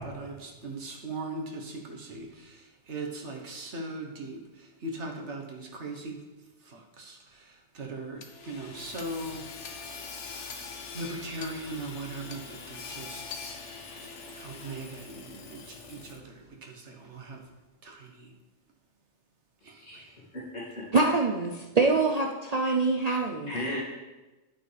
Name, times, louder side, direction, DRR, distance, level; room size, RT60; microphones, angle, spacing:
voice 1, 0.0-6.2 6.6-9.9 10.3-13.3 13.9-17.5 17.8-18.3 19.6-20.2, right 2 dB, 75° right, 1 dB, 1.6 m, -40 dB
Hammer / Sawing, 8.2-16.4, left 5 dB, 90° left, 1.2 m, -43 dB
voice 2, 19.6-20.1 20.3-20.9 22.6-22.8 23.5-23.8, left 1 dB, 70° left, -9 dB, 2.8 m, -37 dB
voice 3, 20.9-23.5, right 3 dB, 45° right, 1 dB, 0.6 m, -25 dB
11.0 x 8.4 x 3.4 m, 1.1 s
omnidirectional pair, 1.2 m